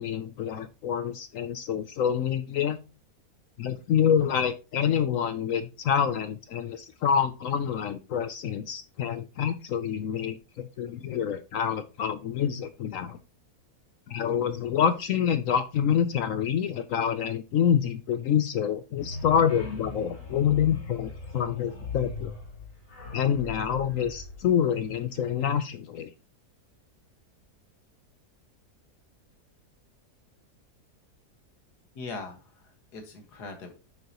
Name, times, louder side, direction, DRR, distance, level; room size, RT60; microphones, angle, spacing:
voice 1, 0.0-2.8 3.6-13.2 14.1-22.3 23.1-26.1, left 8 dB, 65° left, 11 dB, 0.9 m, -27 dB
sound 1, 19.0-25.2, left 4 dB, 50° left, 3.4 m, -40 dB
voice 2, 31.9-33.8, left 3 dB, 85° left, 4 dB, 2.2 m, -41 dB
8.6 x 6.5 x 2.9 m, 0.31 s
omnidirectional pair, 1.7 m